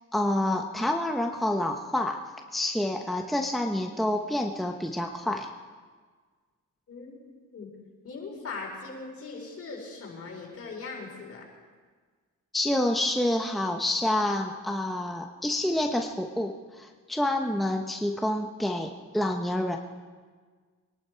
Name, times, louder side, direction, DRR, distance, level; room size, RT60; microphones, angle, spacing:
voice 1, 0.1-2.2 2.5-5.5 12.5-19.8, left 1 dB, ahead, 3 dB, 1.0 m, -28 dB
voice 2, 6.9-7.2 7.5-7.7 8.0-11.4, left 4 dB, 50° left, 0 dB, 4.5 m, -40 dB
23.5 x 11.5 x 4.6 m, 1.5 s
cardioid pair, 90°, 30 cm